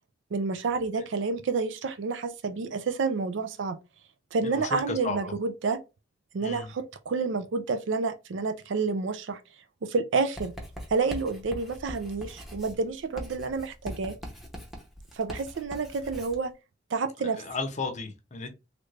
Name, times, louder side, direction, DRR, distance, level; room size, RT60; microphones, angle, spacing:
voice 1, 0.3-3.8 4.3-5.8 6.3-9.4 9.8-10.5 10.9-14.1 15.1-16.5 16.9-17.4, right 4 dB, 75° right, 0.4 m, -29 dB
voice 2, 4.4-5.4 6.4-6.7 17.2-18.5, left 3 dB, 40° left, 0.6 m, -34 dB
Writing, 10.4-16.4, equal, ahead, 0.8 m, -42 dB
3.2 x 2.5 x 3.2 m
head